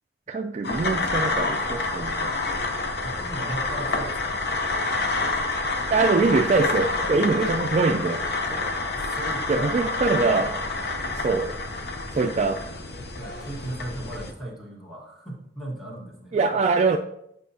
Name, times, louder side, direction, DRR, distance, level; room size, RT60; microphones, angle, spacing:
voice 1, 0.3-2.3 5.9-8.2 9.5-10.5 11.2-11.5 12.1-12.6 16.3-17.0, right 4 dB, 40° right, 5 dB, 0.3 m, -23 dB
sound 1, 0.6-14.3, left 3 dB, 65° left, 0.7 m, -28 dB
voice 2, 3.0-4.4 7.0-7.1 8.5-10.0 10.6-10.8 13.1-16.6, right 1 dB, ahead, -5 dB, 1.4 m, -37 dB
7.4 x 4.9 x 2.8 m, 0.74 s
head